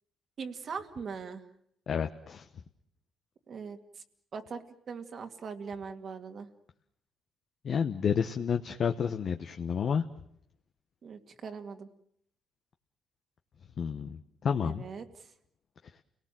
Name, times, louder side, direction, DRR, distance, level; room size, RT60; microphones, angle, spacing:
voice 1, 0.4-1.4 3.5-3.8 4.3-6.5 11.0-11.9 14.6-15.3, right 5 dB, 50° right, 6 dB, 2.3 m, -41 dB
voice 2, 1.9-2.4 7.6-10.0 13.8-14.9, left 7 dB, 55° left, 7 dB, 1.1 m, -30 dB
30.0 x 19.0 x 7.7 m, 0.71 s
cardioid pair, 90°, 0 cm